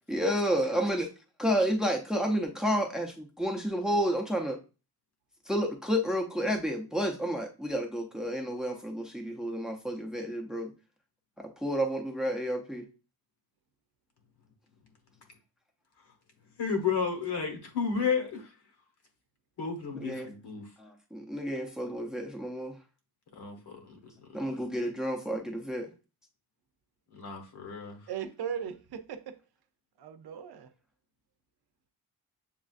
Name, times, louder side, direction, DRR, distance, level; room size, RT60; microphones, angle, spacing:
voice 1, 0.1-1.1 1.4-4.6 5.5-10.7 11.4-12.9 19.9-20.3 20.8-22.8 24.3-25.9, equal, ahead, 0.4 m, -30 dB
voice 2, 16.6-18.5 19.6-20.7 23.4-24.0 24.3-24.4 27.1-28.0, left 6 dB, 80° left, 1.1 m, -32 dB
voice 3, 28.1-29.4 30.0-30.7, right 8 dB, 70° right, 0.6 m, -38 dB
7.1 x 2.4 x 2.4 m
wide cardioid pair, 160°, 39 cm